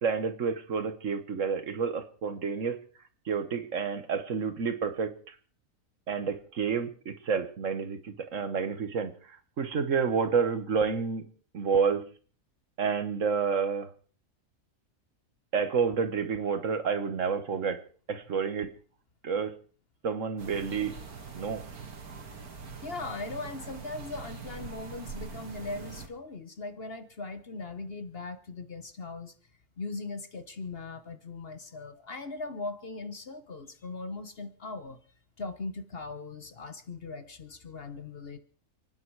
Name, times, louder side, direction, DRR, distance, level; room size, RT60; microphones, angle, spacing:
voice 1, 0.0-2.8 3.2-5.3 6.1-11.3 11.5-12.0 12.8-13.9 15.5-17.8 18.1-18.7 19.2-19.5 20.0-20.9 21.3-21.6, right 6 dB, 60° right, 11 dB, 1.5 m, -29 dB
sound 1, 20.4-26.1, right 5 dB, 85° right, 2.4 m, -43 dB
voice 2, 22.8-29.3 29.8-35.0 35.4-38.4, left 3 dB, 45° left, 11 dB, 1.2 m, -39 dB
29.0 x 9.7 x 4.7 m, 0.42 s
omnidirectional pair, 1.5 m